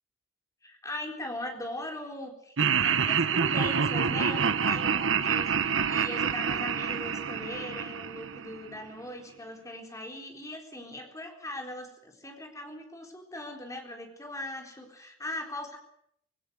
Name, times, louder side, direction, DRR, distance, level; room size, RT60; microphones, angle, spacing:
voice 1, 0.6-15.8, left 1 dB, 15° left, 3 dB, 4.1 m, -40 dB
Laughter, 2.6-8.8, right 6 dB, 70° right, 1.0 m, -27 dB
20.0 x 18.0 x 9.3 m, 0.72 s
head